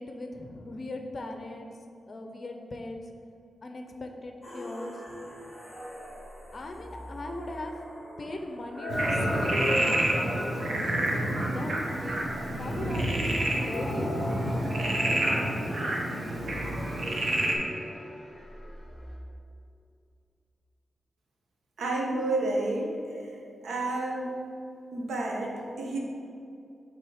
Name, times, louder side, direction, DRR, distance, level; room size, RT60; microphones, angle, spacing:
voice 1, 0.0-1.7 2.1-3.0 3.6-4.9 5.2-5.3 6.5-7.7 8.2-12.3 12.6-14.2, left 2 dB, 35° left, 4 dB, 0.5 m, -39 dB
sound 1, 4.4-19.2, left 1 dB, 10° left, 1.5 m, -37 dB
Frog, 8.9-17.6, right 1 dB, 50° right, 0.9 m, -29 dB
voice 2, 21.8-22.9 23.6-24.3 24.9-26.0, right 2 dB, 85° right, -1 dB, 1.0 m, -30 dB
5.9 x 3.7 x 4.9 m, 2.6 s
wide cardioid pair, 160°, 0 cm